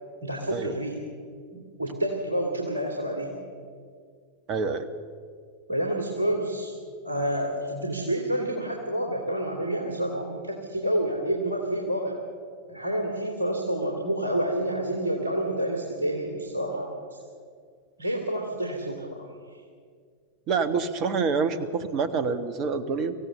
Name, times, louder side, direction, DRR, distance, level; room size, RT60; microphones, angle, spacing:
voice 1, 0.2-1.0 1.5-3.4 5.7-6.7 7.0-12.2 12.7-17.2 18.0-19.6, right 1 dB, 75° right, 1 dB, 3.0 m, -29 dB
voice 2, 4.5-4.9 20.5-23.1, right 5 dB, 35° right, 11 dB, 1.5 m, -27 dB
25.0 x 16.0 x 6.9 m, 2.1 s
figure-of-eight pair, 90°, 0 cm